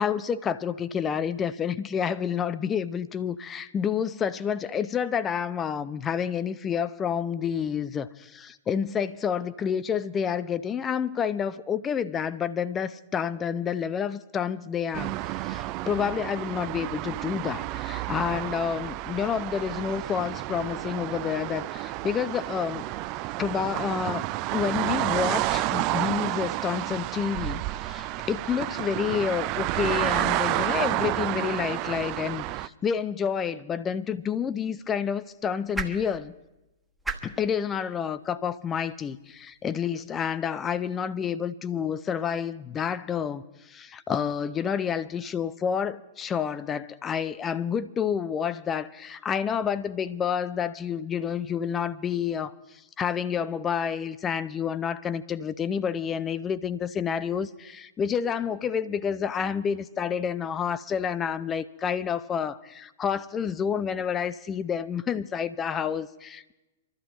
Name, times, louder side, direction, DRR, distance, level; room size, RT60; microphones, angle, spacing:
voice 1, 0.0-22.9 23.4-36.3 37.2-66.5, left 7 dB, 20° left, 0.6 m, -29 dB
sound 1, 14.9-32.7, right 17 dB, 40° right, 0.4 m, -30 dB
sound 2, 33.9-40.2, right 2 dB, 5° right, 1.2 m, -41 dB
27.5 x 13.0 x 3.1 m
figure-of-eight pair, 105°, 0 cm